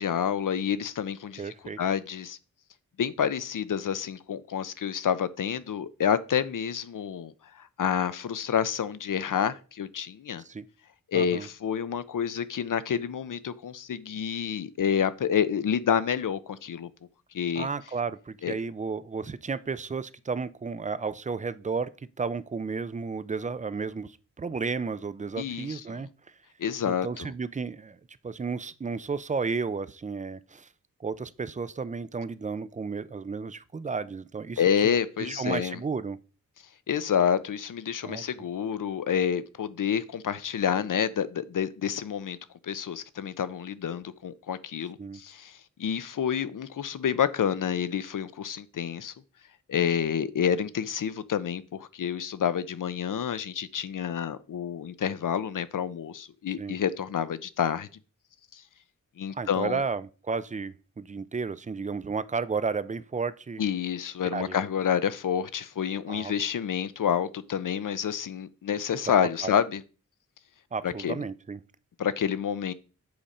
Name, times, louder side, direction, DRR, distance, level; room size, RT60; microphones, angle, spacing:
voice 1, 0.0-1.4 1.8-2.4 3.0-10.4 11.1-16.9 17.3-17.7 18.4-18.6 25.4-26.0 26.6-27.3 34.6-35.8 36.9-42.4 42.6-49.1 49.7-57.9 58.5-58.6 59.2-59.8 63.6-69.8 70.8-71.1 72.0-72.7, left 8 dB, 65° left, 0.6 m, -28 dB
voice 2, 1.4-1.8 10.4-10.7 11.1-11.5 17.6-21.9 22.2-26.3 26.8-28.0 28.2-30.7 31.0-34.6 35.2-36.2 38.0-38.2 45.0-45.2 56.6-56.8 59.3-63.6 64.3-64.6 66.1-66.3 69.4-69.5 70.7-71.6, right 4 dB, 25° right, 0.4 m, -33 dB
7.8 x 5.1 x 4.2 m
wide cardioid pair, 140°, 34 cm